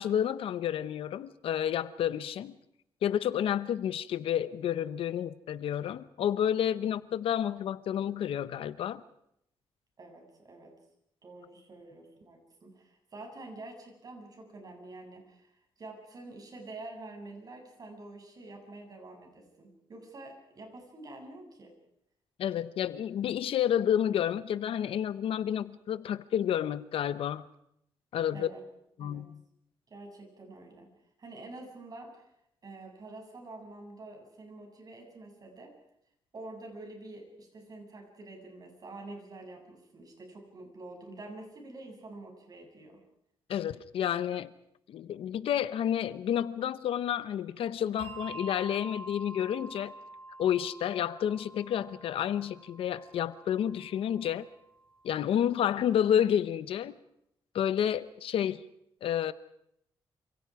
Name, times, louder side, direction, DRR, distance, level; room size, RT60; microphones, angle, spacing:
voice 1, 0.0-2.5 3.0-9.0 22.4-27.5 28.1-28.5 29.0-29.4 43.5-44.5 44.9-49.9 50.4-54.5 55.0-56.9 57.5-58.6 59.0-59.3, left 10 dB, 85° left, 15 dB, 1.0 m, -30 dB
voice 2, 10.0-10.7 11.2-15.5 15.8-21.7 28.3-28.6 29.0-29.3 29.9-30.9 31.2-32.2 32.6-35.7 36.3-43.0, right 2 dB, 45° right, 2 dB, 7.5 m, -47 dB
Bell, 48.0-54.9, right 2 dB, 85° right, 3.7 m, -47 dB
28.0 x 27.0 x 4.9 m, 0.76 s
cardioid pair, 115°, 9 cm